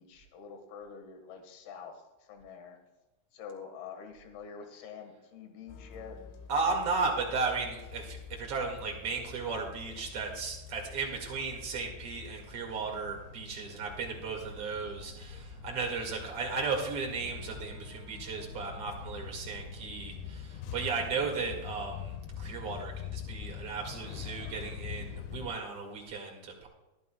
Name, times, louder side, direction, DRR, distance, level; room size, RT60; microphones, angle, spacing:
voice 1, 0.0-2.0 2.3-2.8 3.3-6.2, left 6 dB, 65° left, 5 dB, 3.3 m, -46 dB
sound 1, 5.7-25.5, left 7 dB, 85° left, 3.2 m, -44 dB
voice 2, 6.5-26.7, right 4 dB, 45° right, 0 dB, 2.2 m, -35 dB
22.0 x 11.0 x 2.3 m, 1.1 s
omnidirectional pair, 5.2 m